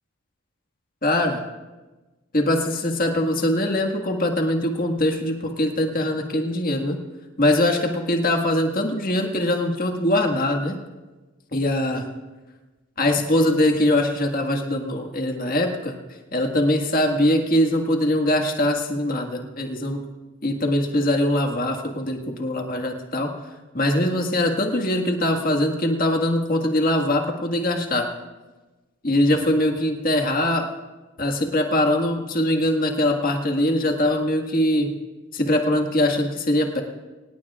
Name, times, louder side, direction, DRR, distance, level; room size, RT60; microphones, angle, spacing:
voice 1, 1.0-1.4 2.3-7.0 7.4-10.7 11.5-12.0 13.0-16.0 16.3-20.0 20.4-23.3 23.7-28.1 29.0-30.7 31.2-34.9 35.3-36.8, left 1 dB, 40° left, 3 dB, 1.8 m, -22 dB
25.0 x 18.5 x 2.5 m, 1.2 s
head